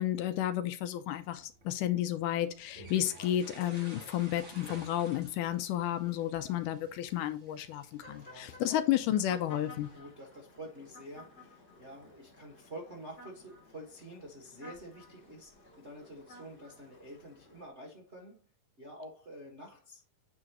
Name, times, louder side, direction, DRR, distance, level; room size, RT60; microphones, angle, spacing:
voice 1, 0.0-9.9, left 12 dB, 75° left, 2.0 m, -32 dB
sound 1, 1.2-10.0, right 2 dB, 25° right, 2.3 m, -54 dB
sound 2, 8.0-17.7, left 2 dB, 20° left, 2.6 m, -55 dB
voice 2, 8.2-8.9 9.9-18.5 18.8-20.0, right 1 dB, 70° right, 0.6 m, -48 dB
8.7 x 4.9 x 3.0 m
omnidirectional pair, 4.1 m